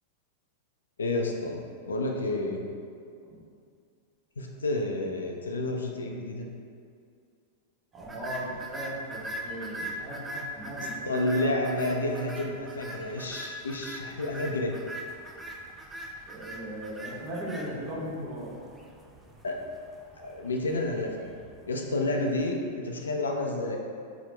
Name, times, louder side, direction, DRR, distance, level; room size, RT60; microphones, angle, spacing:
voice 1, 1.0-2.6 4.4-6.5 11.1-14.7 19.4-19.6 20.2-21.4 21.7-23.8, left 2 dB, 85° left, 1 dB, 0.3 m, -30 dB
voice 2, 7.9-11.5 16.3-18.5, equal, 35° right, -6 dB, 0.9 m, -38 dB
sound 1, 8.0-22.3, right 1 dB, 15° right, 0.3 m, -41 dB
3.0 x 2.0 x 3.2 m, 2.3 s
hypercardioid pair, 100°, 0 cm